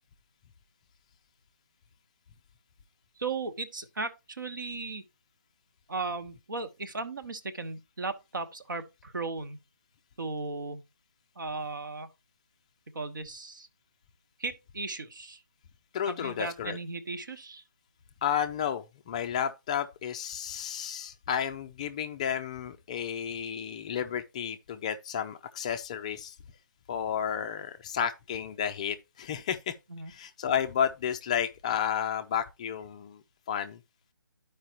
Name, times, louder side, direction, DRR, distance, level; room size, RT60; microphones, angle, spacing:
voice 1, 3.2-5.0 5.9-9.6 10.2-10.8 11.4-12.1 12.9-13.7 14.4-15.4 16.1-17.6 29.9-30.1, right 3 dB, 65° right, 1.1 m, -36 dB
voice 2, 15.9-16.8 18.2-26.4 26.9-29.7 30.1-33.2 33.5-33.8, left 8 dB, 20° left, 0.4 m, -32 dB
12.0 x 4.9 x 2.9 m
figure-of-eight pair, 150°, 11 cm